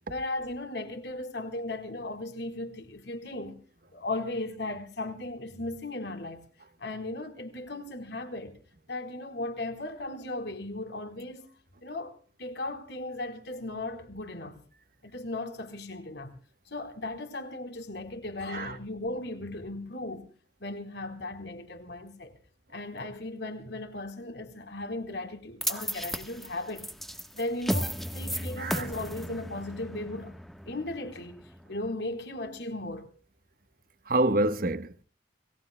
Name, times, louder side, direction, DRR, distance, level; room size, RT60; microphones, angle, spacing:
voice 1, 0.1-3.6 3.9-6.4 6.8-8.5 8.9-11.5 11.8-14.6 15.0-16.3 16.7-20.3 20.6-22.3 22.7-26.9 27.3-30.3 30.7-33.1, left 2 dB, 70° left, 4.0 m, -37 dB
sound 1, 25.6-31.9, equal, ahead, 1.2 m, -35 dB
voice 2, 34.1-35.0, right 2 dB, 50° right, 1.2 m, -27 dB
29.5 x 19.5 x 2.2 m
head